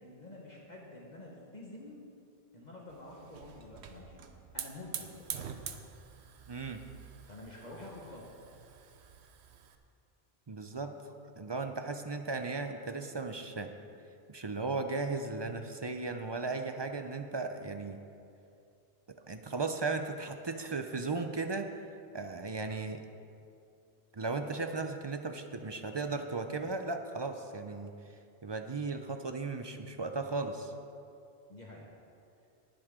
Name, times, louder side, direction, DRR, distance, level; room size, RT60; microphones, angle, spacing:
voice 1, 0.0-2.0 2.5-4.2 4.5-5.3 7.3-8.3 31.5-31.9, left 2 dB, 45° left, -3 dB, 1.4 m, -48 dB
Hiss / Fire, 2.9-9.7, right 7 dB, 85° right, 1.0 m, -46 dB
voice 2, 6.5-6.8 10.5-11.0 11.4-13.7 14.3-18.0 19.3-21.7 22.1-23.0 24.1-27.9 28.4-30.7, right 3 dB, 30° right, 6 dB, 0.5 m, -36 dB
19.5 x 7.8 x 3.7 m, 2.5 s
omnidirectional pair, 1.1 m